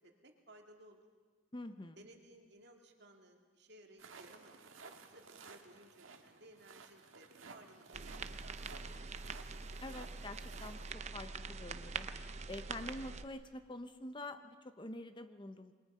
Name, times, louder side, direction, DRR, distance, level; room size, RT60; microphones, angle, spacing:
voice 1, 0.0-1.0 2.0-9.3, right 1 dB, 55° right, 3 dB, 2.3 m, -60 dB
voice 2, 1.5-2.0 9.8-12.1 12.5-15.7, left 1 dB, 25° left, 9 dB, 0.7 m, -47 dB
sound 1, 4.0-10.9, right 4 dB, 80° right, 1.7 m, -56 dB
sound 2, 7.9-13.2, right 4 dB, 35° right, 0.6 m, -44 dB
28.5 x 22.0 x 5.5 m, 1.5 s
head